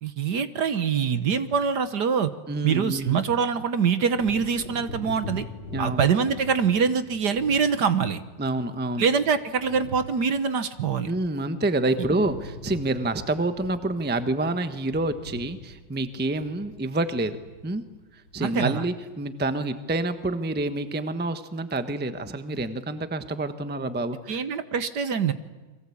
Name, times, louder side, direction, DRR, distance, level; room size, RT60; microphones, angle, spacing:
voice 1, 0.0-2.3 2.6-5.5 5.8-8.2 9.0-11.1 18.4-18.8 24.3-25.3, right 6 dB, 55° right, 11 dB, 1.6 m, -24 dB
voice 2, 2.5-3.2 5.7-6.0 8.4-9.1 11.1-17.4 17.6-17.8 18.3-24.4, right 2 dB, 5° right, 10 dB, 0.9 m, -28 dB
Wind / Thunder, 4.2-11.7 12.0-19.2 19.6-19.8, left 1 dB, 65° left, 5.8 m, -43 dB
30.0 x 23.0 x 8.6 m, 1.3 s
omnidirectional pair, 2.3 m